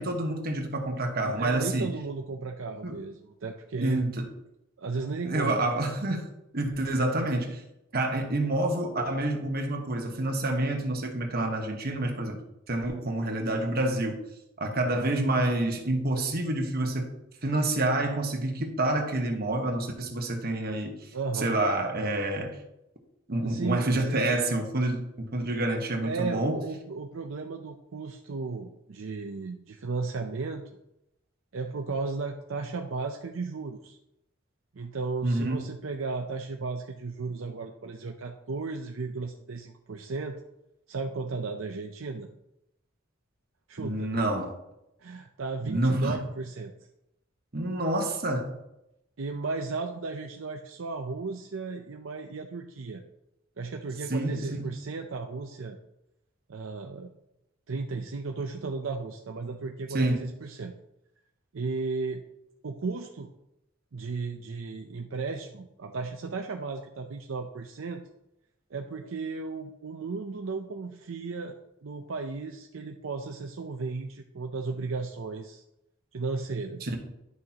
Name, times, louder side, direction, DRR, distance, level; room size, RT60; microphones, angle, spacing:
voice 1, 0.0-1.9 2.8-3.0 3.8-4.3 5.2-6.3 6.5-7.6 7.9-14.2 14.6-17.1 17.4-22.6 23.3-26.6 35.2-35.6 43.8-44.6 45.6-46.2 47.5-48.6 54.1-54.7 59.9-60.3 76.8-77.0, right 1 dB, 50° right, 1.3 m, -28 dB
voice 2, 1.2-4.0 4.8-5.6 21.1-21.6 23.4-24.3 26.0-30.6 31.5-34.0 34.7-40.4 40.9-42.3 43.7-44.1 45.0-46.7 49.2-53.0 53.6-55.8 56.5-57.1 57.7-60.7 61.5-62.2 62.6-63.3 63.9-68.0 68.7-71.6 71.8-75.6 76.1-76.9, right 4 dB, 70° right, 0.6 m, -35 dB
11.0 x 6.3 x 2.9 m
head